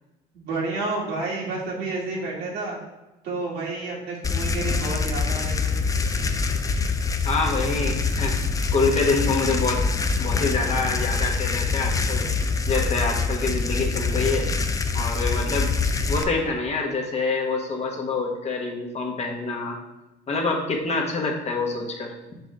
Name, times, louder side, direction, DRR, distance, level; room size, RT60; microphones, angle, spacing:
voice 1, 0.3-2.8 3.2-5.8, right 3 dB, 80° right, -4 dB, 2.1 m, -30 dB
sound 1, 4.2-16.2, left 4 dB, 20° left, 0.4 m, -25 dB
voice 2, 7.2-8.3 8.7-9.8 10.2-12.3 12.7-14.5 14.9-15.7 16.1-19.8 20.3-22.4, left 3 dB, 40° left, 1 dB, 1.2 m, -26 dB
6.0 x 5.1 x 3.5 m, 1.0 s
cardioid pair, 110°, 17 cm